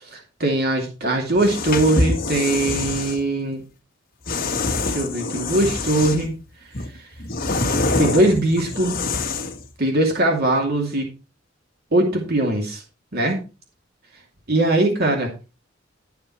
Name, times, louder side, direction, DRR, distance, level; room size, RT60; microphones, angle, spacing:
voice 1, 0.0-3.6 4.8-6.3 8.0-9.0 9.8-11.1 11.9-12.8 13.1-13.4 14.5-15.3, right 1 dB, 55° right, 1 dB, 2.5 m, -21 dB
sound 1, 1.3-3.2 4.3-6.3 6.7-9.6, left 3 dB, 50° left, 1.5 m, -25 dB
12.0 x 7.1 x 4.2 m, 0.31 s
head